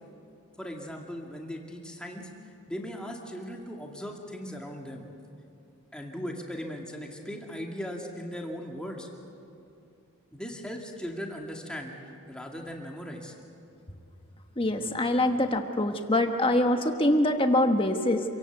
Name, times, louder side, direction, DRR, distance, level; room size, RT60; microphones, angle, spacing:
voice 1, 0.6-2.3 2.7-5.1 5.9-9.1 10.3-11.9 12.3-13.4, equal, 5° left, 0 dB, 2.2 m, -38 dB
voice 2, 14.6-18.2, left 1 dB, 25° left, 5 dB, 1.3 m, -24 dB
27.5 x 17.5 x 8.1 m, 2.5 s
head